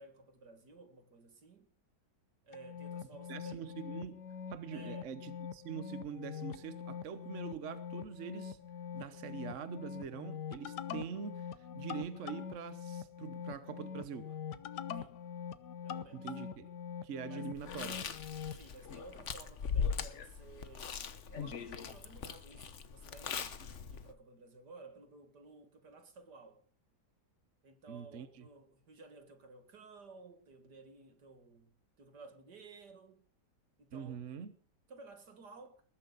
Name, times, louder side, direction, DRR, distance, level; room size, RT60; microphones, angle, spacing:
voice 1, 0.0-1.7 2.4-3.7 4.7-5.1 14.9-15.2 15.8-16.3 17.3-17.5 18.5-26.6 27.6-33.2 33.8-34.2 34.9-35.8, right 3 dB, 75° right, 2.6 m, -55 dB
sound 1, 2.5-18.6, left 8 dB, 80° left, 1.5 m, -44 dB
voice 2, 3.3-4.2 4.5-8.6 8.9-14.4 16.1-16.7 17.0-18.0 27.9-28.4 33.9-34.5, right 7 dB, 50° right, 1.2 m, -44 dB
Chewing mastication, 17.6-24.1, left 6 dB, 50° left, 1.3 m, -40 dB
20.5 x 12.5 x 4.0 m
omnidirectional pair, 1.8 m